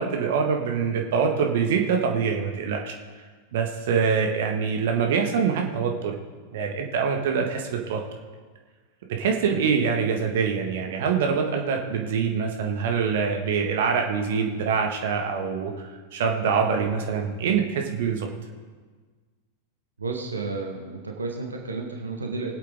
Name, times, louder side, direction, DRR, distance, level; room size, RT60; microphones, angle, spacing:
voice 1, 0.0-3.0 3.5-6.1 6.5-8.0 9.2-18.3, right 6 dB, 55° right, 2 dB, 1.6 m, -24 dB
voice 2, 20.0-22.5, right 3 dB, 75° right, 2 dB, 1.5 m, -32 dB
21.0 x 8.3 x 3.6 m, 1.4 s
figure-of-eight pair, 90°, 0 cm